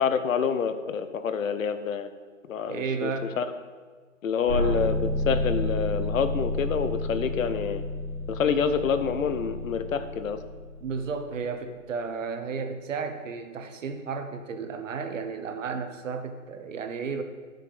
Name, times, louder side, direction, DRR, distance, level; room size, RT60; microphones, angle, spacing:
voice 1, 0.0-2.1 2.5-3.5 4.2-7.8 8.3-10.4, left 6 dB, 75° left, 10 dB, 0.9 m, -27 dB
voice 2, 2.7-3.3 10.8-17.2, right 5 dB, 65° right, 7 dB, 1.1 m, -33 dB
sound 1, 4.5-11.4, left 1 dB, 85° right, 2.6 m, -31 dB
9.7 x 6.6 x 4.9 m, 1.5 s
hypercardioid pair, 150°, 40 cm